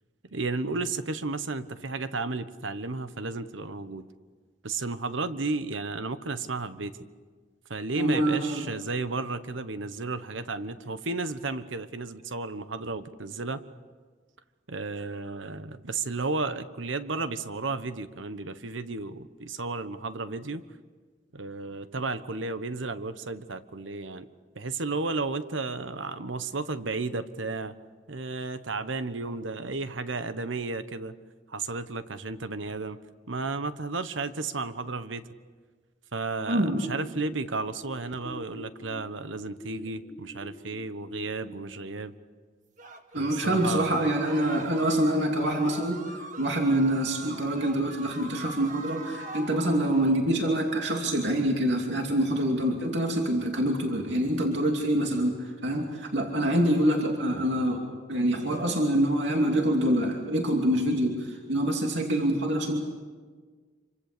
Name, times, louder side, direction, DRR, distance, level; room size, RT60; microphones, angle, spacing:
voice 1, 0.3-4.1 4.6-7.1 7.7-13.6 14.7-20.6 21.3-24.3 24.5-27.7 28.1-31.1 31.5-33.0 33.3-35.3 36.1-42.1 43.1-44.1, right 3 dB, 85° right, 11 dB, 1.2 m, -33 dB
voice 2, 8.0-8.7 36.5-36.8 43.1-46.0 46.4-57.8 58.1-62.8, right 1 dB, 70° right, 1 dB, 2.7 m, -26 dB
sound 1, 36.6-41.6, equal, 5° left, 2.4 m, -46 dB
sound 2, 42.8-50.2, right 3 dB, 40° right, 1.8 m, -43 dB
27.0 x 25.0 x 6.9 m, 1.5 s
head